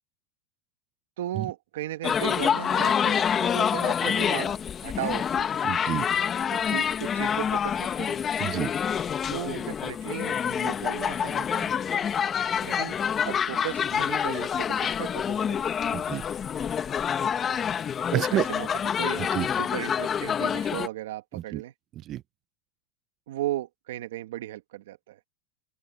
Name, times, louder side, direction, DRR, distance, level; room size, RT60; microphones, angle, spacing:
voice 1, 1.2-5.5 6.5-8.2 9.3-11.7 12.6-13.0 13.2-15.6 18.1-19.3 19.5-21.7 23.3-25.3, right 14 dB, 80° right, 1.7 m, -36 dB
sound 1, 2.0-20.9, left 8 dB, 25° left, 1.4 m, -27 dB
voice 2, 5.6-6.1 8.4-8.7 15.9-16.2 18.1-18.5 19.3-19.5 21.5-21.6 22.1-22.2, right 13 dB, 35° right, 0.6 m, -28 dB
open air
supercardioid pair, 130°, 0 cm